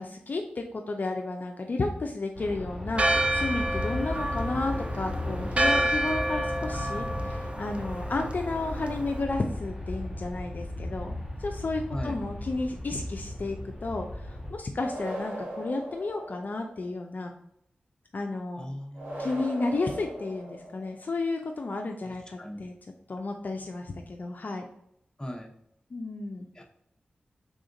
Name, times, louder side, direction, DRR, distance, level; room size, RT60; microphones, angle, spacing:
voice 1, 0.0-17.3 18.1-18.7 19.2-22.7 23.1-24.7 25.9-26.5, left 3 dB, 55° left, 3 dB, 0.4 m, -32 dB
Aircraft, 2.3-14.5, left 1 dB, 10° right, 1.2 m, -36 dB
Church bell, 2.9-9.2, right 1 dB, 35° right, 0.4 m, -29 dB
sound 1, 14.8-16.8 18.9-21.0, right 1 dB, 70° right, 1.4 m, -39 dB
voice 2, 18.6-19.4 22.0-22.1 22.4-22.6 25.2-25.5 26.5-26.6, equal, 20° left, 2 dB, 0.8 m, -38 dB
3.5 x 2.4 x 3.8 m, 0.74 s
cardioid pair, 50°, 4 cm